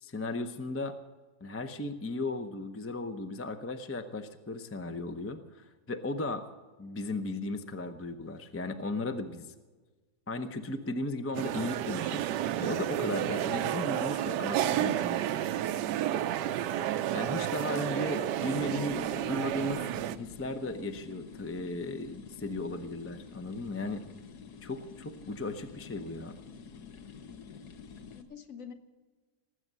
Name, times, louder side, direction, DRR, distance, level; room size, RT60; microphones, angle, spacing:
voice 1, 0.0-1.0 1.4-6.5 6.8-9.5 10.3-12.3 12.6-15.2 17.1-19.8 20.2-24.0 24.6-26.3, left 2 dB, 20° left, 7 dB, 0.3 m, -36 dB
sound 1, 11.3-20.2, right 12 dB, 80° right, 1.2 m, -31 dB
voice 2, 17.7-19.9 28.1-28.7, left 6 dB, 50° left, 7 dB, 1.5 m, -47 dB
sound 2, 18.5-28.2, left 5 dB, 65° left, 1.6 m, -48 dB
19.0 x 8.1 x 7.5 m, 1.3 s
omnidirectional pair, 1.9 m